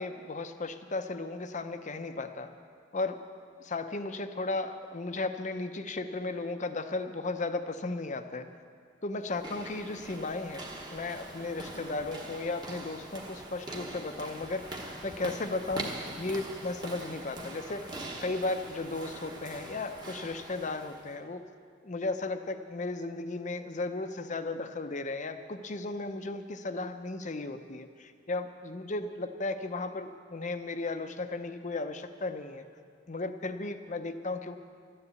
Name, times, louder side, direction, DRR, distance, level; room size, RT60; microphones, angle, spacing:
voice 1, 0.0-2.5 2.9-3.2 3.6-8.5 9.0-21.4 21.8-32.6 33.1-34.6, left 3 dB, 35° left, 9 dB, 0.7 m, -35 dB
sound 1, 9.2-21.2, right 1 dB, 20° right, 1.2 m, -43 dB
13.0 x 10.0 x 8.1 m, 2.1 s
head